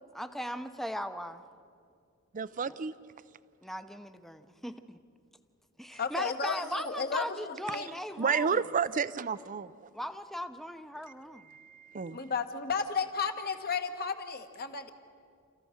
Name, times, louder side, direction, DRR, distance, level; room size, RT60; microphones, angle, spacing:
voice 1, 0.1-1.4 2.7-2.8 3.6-5.0 5.8-8.6 9.9-11.5, equal, ahead, 9 dB, 0.7 m, -38 dB
voice 2, 2.3-2.9 8.2-9.7 11.5-12.2, right 6 dB, 40° right, 15 dB, 0.5 m, -31 dB
voice 3, 6.0-7.9 12.1-14.9, left 5 dB, 45° left, 7 dB, 1.3 m, -33 dB
29.5 x 14.5 x 6.5 m, 2.3 s
head